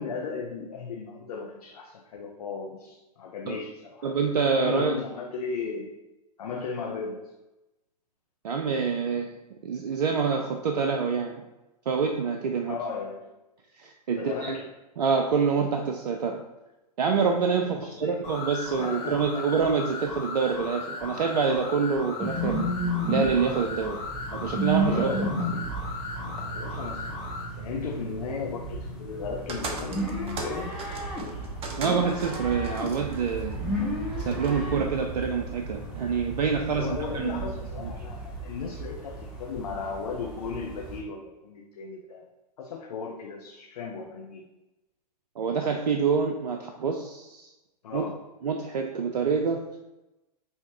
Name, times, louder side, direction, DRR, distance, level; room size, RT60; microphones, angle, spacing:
voice 1, 0.0-4.1 4.6-5.9 6.4-7.2 12.7-13.3 14.1-14.7 17.6-18.2 18.8-19.5 24.9-25.7 26.5-27.2 27.6-30.8 36.7-42.3 42.6-44.5 47.8-48.2, left 5 dB, 65° left, 1 dB, 0.6 m, -36 dB
voice 2, 4.0-4.9 8.4-9.4 9.6-11.4 11.9-12.8 13.8-14.6 15.0-16.4 17.0-22.7 23.1-24.0 24.3-25.2 27.6-27.7 31.8-33.6 34.3-36.9 37.1-37.4 37.8-37.9 45.4-47.5 47.9-48.1 48.4-49.8, right 5 dB, 75° right, 4 dB, 0.5 m, -26 dB
sound 1, 18.2-27.5, left 3 dB, 25° left, 1.2 m, -37 dB
sound 2, 22.2-41.0, right 1 dB, 5° right, 1.0 m, -33 dB
sound 3, 29.5-34.6, right 3 dB, 25° right, 0.7 m, -39 dB
5.6 x 2.8 x 2.9 m, 1.0 s
figure-of-eight pair, 100°, 21 cm